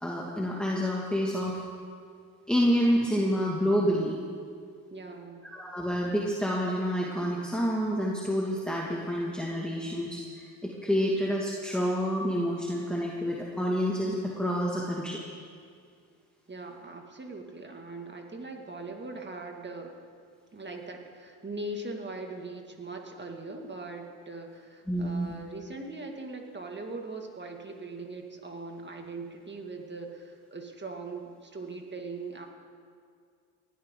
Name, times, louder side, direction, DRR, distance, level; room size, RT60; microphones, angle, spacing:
voice 1, 0.0-1.6 2.5-4.2 5.5-10.2 10.6-15.2 24.9-25.3, equal, ahead, -3 dB, 1.9 m, -28 dB
voice 2, 4.9-5.5 16.5-19.9 20.5-32.5, right 2 dB, 25° right, 3 dB, 2.1 m, -40 dB
19.0 x 13.5 x 3.8 m, 2.2 s
supercardioid pair, 75°, 44 cm